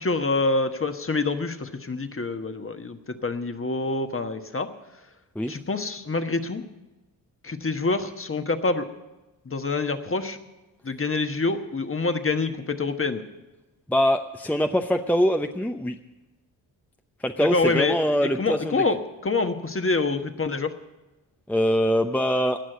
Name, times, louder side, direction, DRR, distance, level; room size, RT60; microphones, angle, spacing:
voice 1, 0.0-4.7 5.5-6.6 7.4-8.9 9.4-10.4 10.8-13.2 17.4-18.0 18.2-19.0 19.2-20.7, left 3 dB, 30° left, 7 dB, 1.3 m, -26 dB
voice 2, 13.9-16.0 17.2-18.8 21.5-22.6, equal, 5° left, 6 dB, 0.7 m, -23 dB
18.0 x 6.3 x 9.2 m, 1.1 s
supercardioid pair, 50°, 44 cm